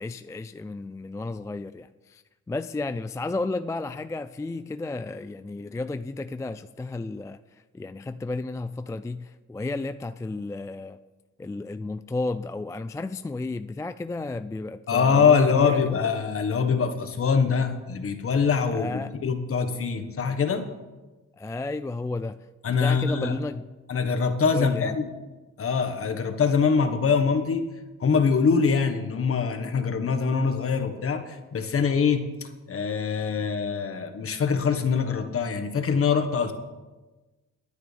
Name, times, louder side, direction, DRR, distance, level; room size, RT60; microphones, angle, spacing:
voice 1, 0.0-11.0 11.4-16.0 18.7-19.2 21.4-22.4 22.8-23.7 24.5-24.9, left 3 dB, 10° left, 11 dB, 0.3 m, -33 dB
voice 2, 14.9-20.7 22.6-23.4 23.9-25.1 25.6-27.6 28.0-36.5, left 5 dB, 45° left, 7 dB, 1.6 m, -24 dB
23.0 x 9.2 x 3.5 m, 1.2 s
cardioid pair, 90°, 30 cm